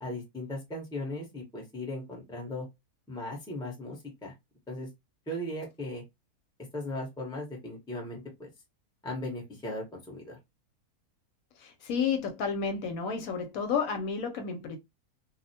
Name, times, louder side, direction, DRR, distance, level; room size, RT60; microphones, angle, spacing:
voice 1, 0.0-2.7 3.1-4.3 4.7-4.9 5.3-6.0 6.7-8.5 9.0-10.4, left 1 dB, 5° left, 0.6 m, -37 dB
voice 2, 11.6-14.8, left 6 dB, 70° left, 0.9 m, -31 dB
2.5 x 2.1 x 2.6 m
omnidirectional pair, 1.6 m